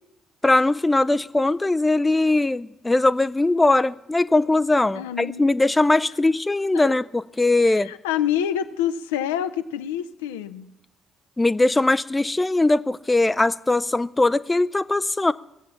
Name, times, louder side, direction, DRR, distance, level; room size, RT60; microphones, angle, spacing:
voice 1, 0.4-7.9 11.4-15.3, left 2 dB, 15° left, 0.4 m, -20 dB
voice 2, 4.9-5.5 6.7-6.9 7.6-10.7, left 10 dB, 75° left, 0.5 m, -27 dB
18.5 x 7.4 x 8.3 m
figure-of-eight pair, 45°, 0 cm